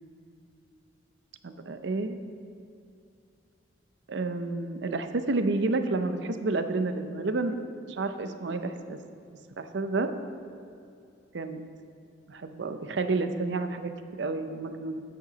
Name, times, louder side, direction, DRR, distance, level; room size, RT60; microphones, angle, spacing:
voice 1, 1.4-2.2 4.1-7.6 7.9-9.0 9.6-10.1 11.3-11.6 12.3-15.0, right 3 dB, 65° right, 9 dB, 0.6 m, -30 dB
7.8 x 6.7 x 6.1 m, 2.5 s
head